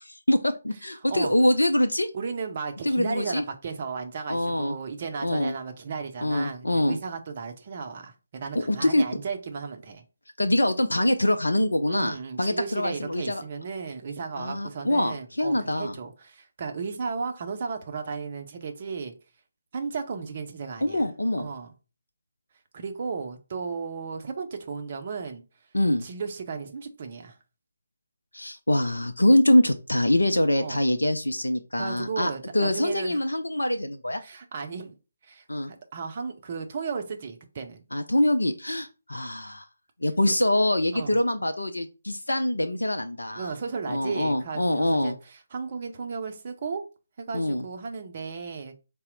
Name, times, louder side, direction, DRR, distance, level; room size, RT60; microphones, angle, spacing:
voice 1, 0.0-2.1 2.8-3.4 4.3-4.8 5.2-5.5 6.2-7.0 8.5-9.0 10.4-13.4 14.4-16.0 20.8-21.5 25.7-26.0 28.3-34.2 35.5-35.7 37.9-39.7 40.0-43.5 43.9-45.1 47.3-47.6, left 1 dB, 70° left, 0.4 m, -24 dB
voice 2, 2.1-10.0 11.9-19.1 19.7-21.0 21.4-21.7 22.7-25.4 26.0-27.4 30.6-30.9 31.8-33.2 34.2-34.9 35.2-37.8 40.3-40.4 40.9-41.2 43.3-46.8 47.2-48.7, right 5 dB, 35° right, 0.6 m, -35 dB
4.1 x 2.0 x 3.8 m
figure-of-eight pair, 145°, 0 cm